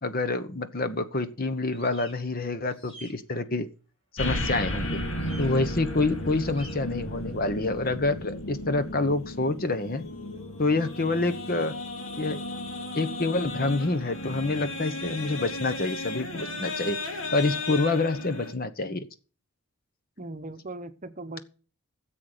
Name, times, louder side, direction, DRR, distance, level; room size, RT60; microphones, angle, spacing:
voice 1, 0.0-3.7 4.1-5.0 5.4-10.0 10.6-11.7 12.2-12.4 12.9-17.0 17.3-19.1, left 3 dB, 40° left, 1.0 m, -27 dB
sound 1, 1.7-2.1 2.7-3.1 5.2-5.5 6.5-6.7, equal, 25° left, 5.8 m, -47 dB
sound 2, 4.2-18.5, left 1 dB, 60° left, 2.4 m, -34 dB
voice 2, 20.2-21.4, right 2 dB, 35° right, 0.9 m, -39 dB
14.0 x 7.7 x 6.7 m
head